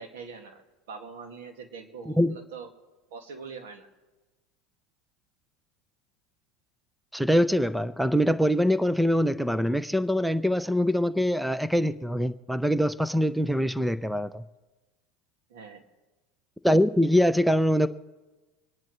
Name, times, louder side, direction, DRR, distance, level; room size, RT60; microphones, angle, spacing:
voice 1, 0.0-2.7 3.1-3.9 15.5-15.8, right 5 dB, 80° right, 4 dB, 2.0 m, -43 dB
voice 2, 7.1-14.4 16.6-17.9, equal, ahead, 15 dB, 0.5 m, -23 dB
25.5 x 10.5 x 3.1 m, 1.2 s
supercardioid pair, 110°, 0 cm